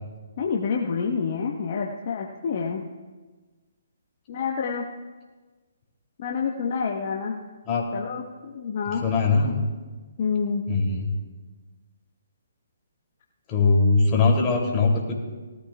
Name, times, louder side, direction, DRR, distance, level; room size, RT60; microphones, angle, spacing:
voice 1, 0.4-2.8 4.3-4.9 6.2-7.4 7.9-9.0 10.2-10.6, left 5 dB, 50° left, 0 dB, 1.1 m, -28 dB
voice 2, 9.0-9.6 10.7-11.1 13.5-15.1, left 3 dB, 25° left, -2 dB, 2.9 m, -21 dB
19.0 x 13.0 x 2.4 m, 1.3 s
figure-of-eight pair, 140°, 0 cm